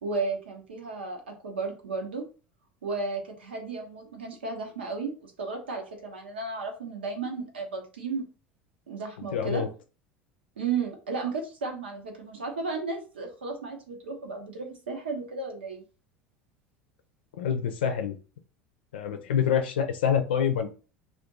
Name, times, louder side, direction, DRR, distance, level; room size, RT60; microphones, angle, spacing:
voice 1, 0.0-2.2 2.8-8.2 8.9-9.6 10.6-15.8, right 4 dB, 85° right, 2 dB, 0.8 m, -34 dB
voice 2, 9.3-9.7 17.4-18.2 18.9-20.7, left 8 dB, 75° left, 7 dB, 0.6 m, -26 dB
2.6 x 2.5 x 3.7 m, 0.35 s
hypercardioid pair, 75°, 6 cm